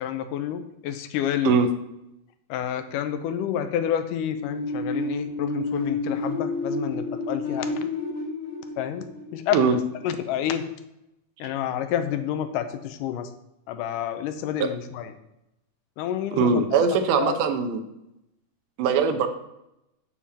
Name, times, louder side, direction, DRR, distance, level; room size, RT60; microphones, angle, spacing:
voice 1, 0.0-1.6 2.5-7.9 8.8-9.8 10.0-10.6 11.4-13.3 13.7-15.1 16.0-16.7 17.1-17.4, left 10 dB, 85° left, 9 dB, 2.2 m, -29 dB
sound 1, 4.4-10.0, left 2 dB, 50° left, 3.0 m, -30 dB
voice 2, 16.3-17.8 18.8-19.3, right 6 dB, 80° right, 7 dB, 2.3 m, -21 dB
7.5 x 7.2 x 4.2 m, 0.86 s
omnidirectional pair, 3.7 m